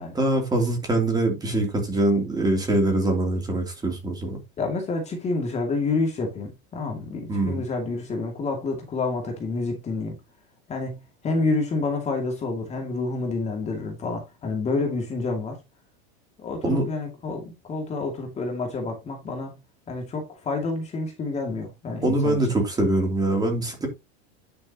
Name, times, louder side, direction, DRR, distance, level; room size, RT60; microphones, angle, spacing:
voice 1, 0.1-4.4 7.3-7.6 16.6-16.9 22.0-23.9, right 2 dB, 10° right, 2.9 m, -23 dB
voice 2, 4.6-10.2 10.7-11.0 11.2-15.6 16.4-19.6 19.9-22.4, left 3 dB, 20° left, 2.3 m, -28 dB
10.5 x 6.9 x 2.9 m
supercardioid pair, 160°, 33 cm